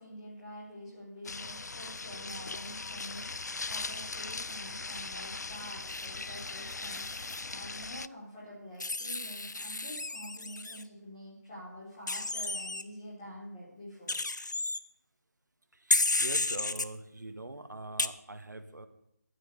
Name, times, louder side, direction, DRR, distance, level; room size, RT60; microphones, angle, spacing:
voice 1, 0.0-14.2, equal, 15° left, -8 dB, 4.2 m, -47 dB
sound 1, 1.2-8.1, left 3 dB, 65° left, 0.5 m, -39 dB
Wild animals, 5.9-7.4 8.8-10.8 12.1-12.8 14.1-14.8 15.9-16.9 18.0-18.1, left 2 dB, 85° left, 1.0 m, -32 dB
voice 2, 15.7-18.9, right 2 dB, 80° right, 8 dB, 2.1 m, -43 dB
12.0 x 9.3 x 8.7 m, 0.74 s
figure-of-eight pair, 175°, 10 cm